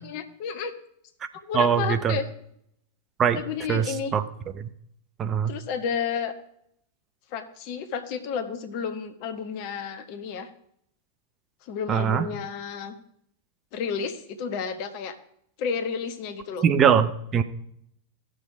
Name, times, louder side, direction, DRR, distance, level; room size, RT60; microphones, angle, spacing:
voice 1, 0.0-0.7 1.4-2.3 3.3-4.1 5.5-6.3 7.3-10.5 11.6-12.9 13.7-15.2 15.6-16.7, left 6 dB, 45° left, 8 dB, 1.2 m, -31 dB
voice 2, 1.5-2.2 3.2-3.4 3.7-4.2 4.6-4.7 5.2-5.5 11.9-12.3 16.6-17.4, right 7 dB, 25° right, 10 dB, 0.7 m, -22 dB
15.5 x 6.5 x 5.0 m, 0.72 s
figure-of-eight pair, 90°, 0 cm